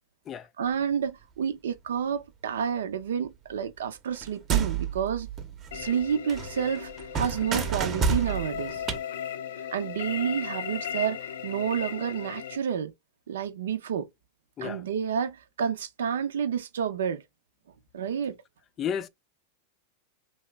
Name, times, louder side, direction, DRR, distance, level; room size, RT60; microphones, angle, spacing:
voice 1, 0.6-5.3 5.7-8.8 9.7-12.9 13.3-14.1 14.6-17.2 17.9-18.4, right 8 dB, 85° right, 0.5 m, -30 dB
sound 1, 4.1-6.0 6.3-9.0, right 6 dB, 30° right, 0.7 m, -30 dB
sound 2, 5.7-12.6, left 8 dB, 80° left, 0.5 m, -37 dB
voice 2, 18.8-19.1, left 8 dB, 30° left, 0.3 m, -32 dB
2.9 x 2.1 x 3.4 m
hypercardioid pair, 120°, 0 cm